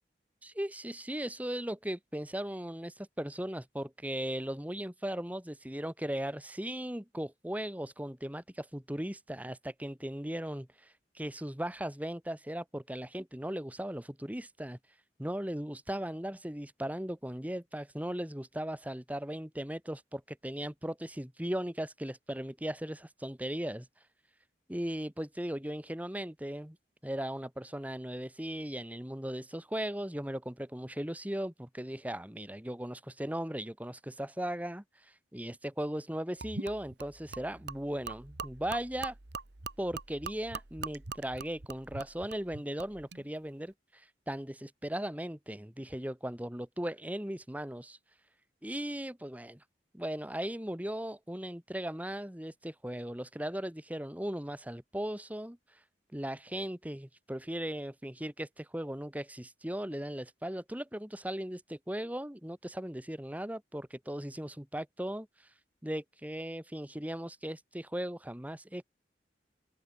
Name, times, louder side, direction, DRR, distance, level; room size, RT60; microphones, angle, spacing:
voice 1, 0.4-10.7 11.2-14.8 15.2-23.8 24.7-26.8 27.0-34.8 35.3-39.2 39.8-43.7 44.3-48.0 48.6-49.6 49.9-55.6 56.1-61.6 61.9-65.3 65.8-68.8, right 1 dB, 10° right, 1.8 m, -37 dB
Gurgling / Liquid, 36.4-43.2, right 4 dB, 70° right, 1.6 m, -43 dB
open air
head